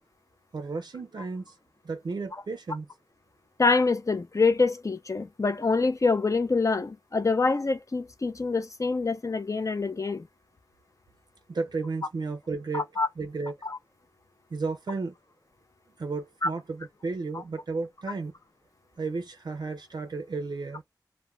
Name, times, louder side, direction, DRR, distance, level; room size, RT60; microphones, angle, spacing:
voice 1, 0.5-1.6 1.8-2.9 11.5-12.9 13.2-13.5 14.5-15.1 16.0-18.3 19.0-20.8, right 4 dB, 70° right, 0.4 m, -33 dB
voice 2, 3.6-10.3 12.7-13.1 13.6-13.8 16.4-16.5, left 4 dB, 45° left, 0.5 m, -25 dB
2.3 x 2.1 x 3.0 m
wide cardioid pair, 45°, 8 cm